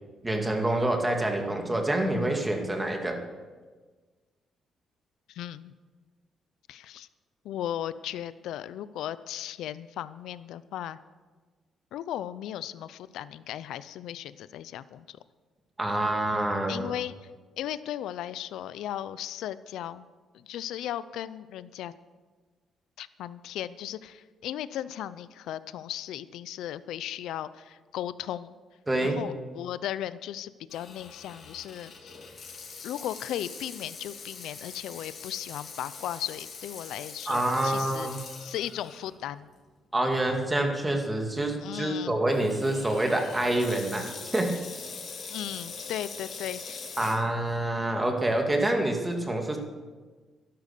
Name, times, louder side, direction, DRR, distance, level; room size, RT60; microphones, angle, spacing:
voice 1, 0.2-3.2 15.8-16.9 28.9-29.2 37.3-38.2 39.9-44.1 44.3-44.5 47.0-49.6, right 1 dB, 15° right, 3 dB, 2.4 m, -27 dB
voice 2, 5.3-5.7 6.7-7.1 7.4-11.0 11.9-15.2 16.7-17.1 17.6-20.0 20.3-21.9 23.0-28.5 29.0-32.1 32.8-38.1 38.4-39.5 41.6-42.1 45.3-47.0, left 11 dB, 85° left, 16 dB, 0.5 m, -36 dB
Water tap faucet / Sink (filling or washing), 30.7-39.1 39.6-39.7 40.4-40.7 42.3-47.2, left 5 dB, 55° left, 3.8 m, -43 dB
12.5 x 11.5 x 6.8 m, 1.4 s
cardioid pair, 90°, 0 cm